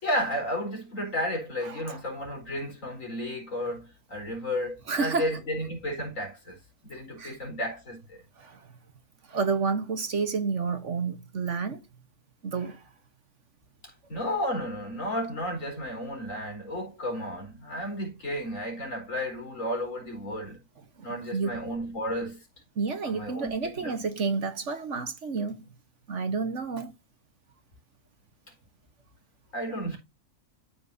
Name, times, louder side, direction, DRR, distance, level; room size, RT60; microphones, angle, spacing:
voice 1, 0.0-6.6 6.8-8.2 13.8-20.6 21.0-22.4 23.0-24.0 29.5-30.0, equal, 60° left, 4.8 m, -33 dB
voice 2, 1.6-2.0 4.9-5.3 7.2-7.4 8.4-8.6 9.3-11.8 12.4-12.8 21.0-21.1 21.3-21.6 22.8-25.6 26.1-26.9, right 5 dB, 55° right, 1.4 m, -30 dB
13.5 x 5.9 x 2.7 m
omnidirectional pair, 1.5 m